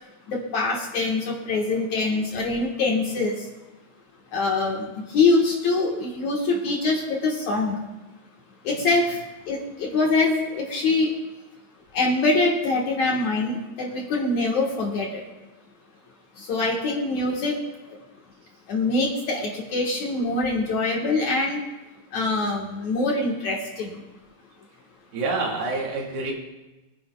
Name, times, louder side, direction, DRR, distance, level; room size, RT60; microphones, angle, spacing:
voice 1, 0.3-3.3 4.3-7.8 8.6-9.2 9.5-11.1 11.9-15.2 16.4-17.6 18.7-21.6 22.1-23.9, left 3 dB, 60° left, -1 dB, 2.3 m, -24 dB
voice 2, 25.1-26.3, right 3 dB, 80° right, -2 dB, 4.0 m, -27 dB
24.0 x 10.0 x 2.3 m, 1.1 s
omnidirectional pair, 4.5 m